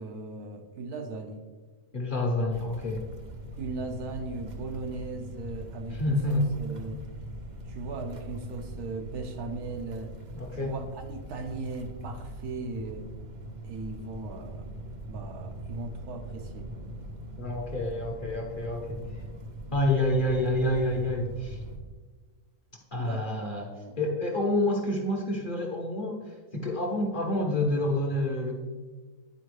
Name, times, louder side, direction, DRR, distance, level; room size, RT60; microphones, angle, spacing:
voice 1, 0.0-1.4 3.6-7.0 7.7-10.1 10.5-13.1 13.6-14.7 15.1-16.7 22.9-24.0, right 3 dB, 90° right, 4 dB, 1.3 m, -38 dB
voice 2, 1.9-3.1 5.9-6.5 10.4-10.7 17.4-19.2 19.7-21.6 22.9-23.7 24.0-28.6, left 1 dB, 45° left, 0 dB, 0.7 m, -28 dB
sound 1, 2.5-21.8, right 1 dB, 55° right, 0.5 m, -42 dB
10.0 x 4.4 x 3.2 m, 1.4 s
omnidirectional pair, 1.6 m